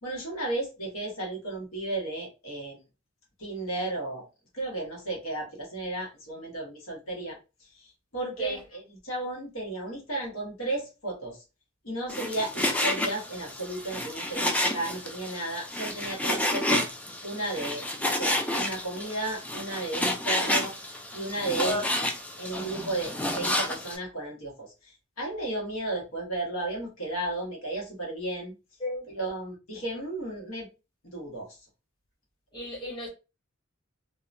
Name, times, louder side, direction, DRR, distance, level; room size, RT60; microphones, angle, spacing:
voice 1, 0.0-2.8 3.4-4.3 4.5-7.4 8.1-11.4 11.8-16.9 17.2-20.7 21.1-22.1 22.4-24.9 25.2-28.5 29.1-30.7 31.1-31.6, right 2 dB, 80° left, 1.1 m, -34 dB
Frying (food), 12.1-24.0, left 1 dB, 5° left, 0.3 m, -30 dB
voice 2, 32.5-33.1, left 1 dB, 25° left, 1.0 m, -33 dB
2.8 x 2.1 x 2.5 m
head